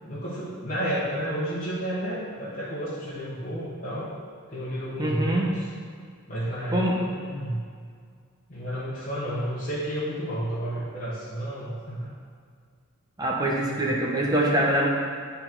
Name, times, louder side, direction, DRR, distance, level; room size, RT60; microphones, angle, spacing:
voice 1, 0.0-4.1 4.5-5.6 6.3-7.6 8.5-12.1 13.7-14.3, right 1 dB, 35° left, -10 dB, 1.3 m, -31 dB
voice 2, 5.0-5.5 6.7-7.0 13.2-14.9, right 1 dB, 20° right, -3 dB, 0.9 m, -24 dB
10.5 x 4.1 x 4.5 m, 2.1 s
head